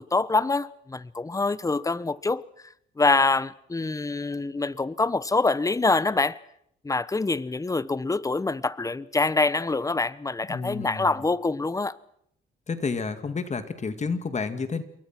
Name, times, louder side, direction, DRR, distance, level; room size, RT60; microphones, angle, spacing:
voice 1, 0.0-2.4 3.0-6.4 6.8-12.0, left 3 dB, 15° left, 1.0 m, -25 dB
voice 2, 10.5-11.1 12.7-14.8, left 4 dB, 35° left, 2.3 m, -30 dB
28.0 x 22.5 x 6.1 m
cardioid pair, 90°, 20 cm